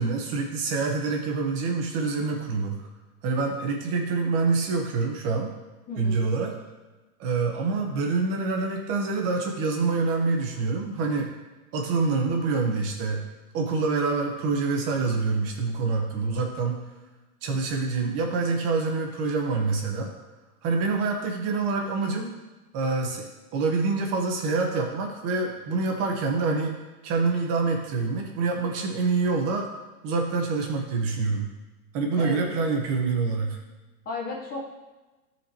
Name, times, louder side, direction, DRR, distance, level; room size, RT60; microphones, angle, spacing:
voice 1, 0.0-2.8 3.2-5.5 6.0-6.5 7.2-11.3 11.7-13.2 13.5-16.8 17.4-20.1 20.6-22.3 22.7-26.8 27.0-29.7 30.0-31.5 31.9-33.6, right 4 dB, 35° right, 2 dB, 1.1 m, -26 dB
voice 2, 5.9-6.3 32.2-32.6 34.0-34.6, left 3 dB, 20° left, -1 dB, 0.9 m, -35 dB
13.0 x 4.5 x 2.9 m, 1.2 s
hypercardioid pair, 140°, 45 cm